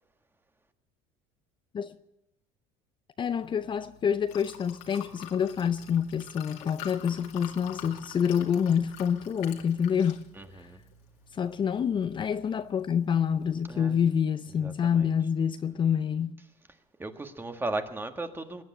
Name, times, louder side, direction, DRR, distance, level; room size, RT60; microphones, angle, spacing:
Liquid, 3.2-13.8, left 9 dB, 85° left, 2.3 m, -48 dB
voice 1, 3.2-10.2 10.5-10.7 11.3-16.4, left 8 dB, 30° left, 0.6 m, -27 dB
voice 2, 10.3-10.8 13.7-14.0 14.6-15.1 17.0-18.6, right 2 dB, 15° right, 1.6 m, -36 dB
20.5 x 9.5 x 7.3 m
supercardioid pair, 100°, 15 cm